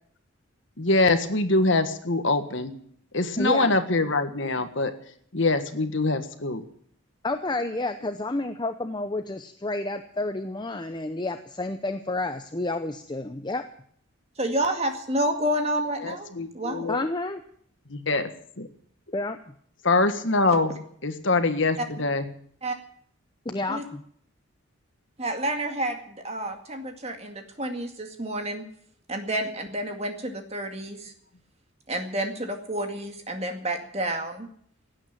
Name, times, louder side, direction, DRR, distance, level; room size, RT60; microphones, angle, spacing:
voice 1, 0.8-2.7 3.1-4.9 5.3-6.6 16.0-17.1 17.9-18.3 18.6-18.7 19.8-20.8 21.0-22.3, left 2 dB, 60° left, 9 dB, 1.5 m, -24 dB
voice 2, 3.4-3.7 7.2-13.6 16.9-17.4 19.1-19.4 23.4-24.0, left 2 dB, 20° left, 8 dB, 0.7 m, -30 dB
voice 3, 14.4-16.3 16.5-16.9 22.6-22.8 23.7-23.8 25.2-28.6 29.1-31.1 31.9-34.5, right 1 dB, 30° right, 5 dB, 2.2 m, -29 dB
17.0 x 9.2 x 8.9 m, 0.63 s
head